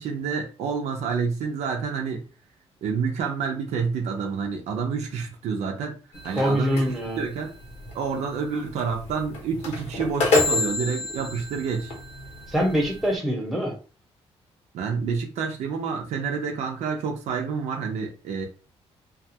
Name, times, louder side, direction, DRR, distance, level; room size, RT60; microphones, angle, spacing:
voice 1, 0.0-2.2 2.8-6.0 6.2-6.8 7.2-7.5 7.9-11.9 14.7-18.5, right 5 dB, 85° right, 2 dB, 0.7 m, -28 dB
sound 1, 6.1-13.2, left 3 dB, 90° left, 1.0 m, -29 dB
voice 2, 6.4-7.2 12.5-13.7, equal, ahead, -2 dB, 0.9 m, -24 dB
2.5 x 2.3 x 2.8 m, 0.34 s
cardioid pair, 125°, 11 cm